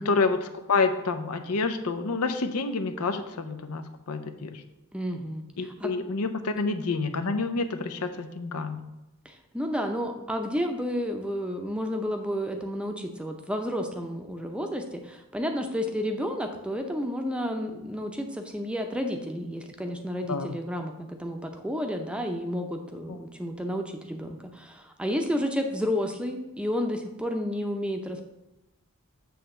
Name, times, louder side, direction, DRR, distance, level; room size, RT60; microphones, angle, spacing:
voice 1, 0.0-4.6 5.6-8.9 20.3-20.5 23.1-23.2, left 4 dB, 85° left, 8 dB, 0.7 m, -28 dB
voice 2, 4.9-5.9 9.2-28.3, equal, 5° right, 4 dB, 0.6 m, -31 dB
7.9 x 3.4 x 6.4 m, 0.97 s
head